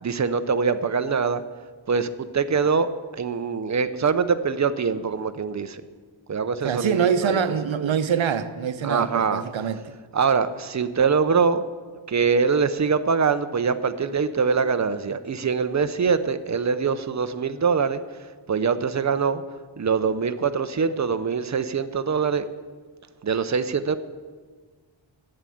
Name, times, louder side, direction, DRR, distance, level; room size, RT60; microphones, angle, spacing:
voice 1, 0.0-1.4 1.9-5.8 6.3-7.4 7.7-7.9 8.8-9.4 10.1-11.6 12.1-19.4 19.8-22.5 23.2-24.0, right 5 dB, 35° right, 0.7 m, -23 dB
voice 2, 6.6-9.9, right 7 dB, 75° right, 0.9 m, -25 dB
11.0 x 8.8 x 8.5 m
wide cardioid pair, 165°, 47 cm